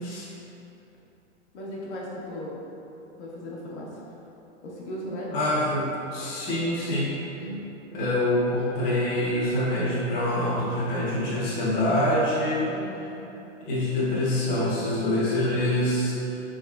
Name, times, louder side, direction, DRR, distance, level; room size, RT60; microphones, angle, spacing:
voice 1, 1.5-2.5 3.2-3.9 4.6-5.3 7.4-7.6 12.7-13.0, equal, 65° left, -5 dB, 1.0 m, -37 dB
voice 2, 5.3-7.1 7.9-12.7 13.7-16.2, left 1 dB, 25° left, -9 dB, 0.7 m, -25 dB
4.0 x 3.5 x 2.3 m, 2.9 s
hypercardioid pair, 145°, 36 cm